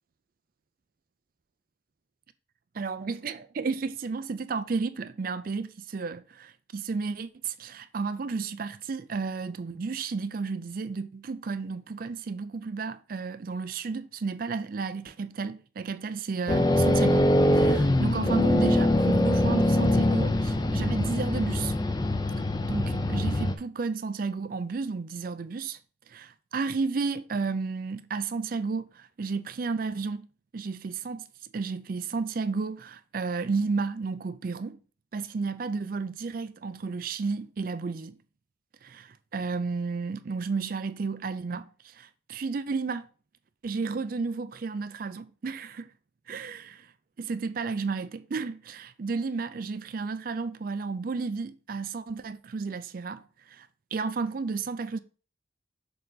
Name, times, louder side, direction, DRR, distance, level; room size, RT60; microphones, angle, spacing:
voice 1, 2.7-21.8 22.7-25.8 26.1-30.3 30.5-31.3 31.5-34.8 35.1-38.2 38.8-43.1 43.6-45.9 46.3-46.9 47.2-55.0, right 4 dB, 45° right, 0.4 m, -32 dB
sound 1, 16.5-23.6, left 1 dB, 20° left, 0.5 m, -23 dB
6.7 x 3.9 x 3.9 m
head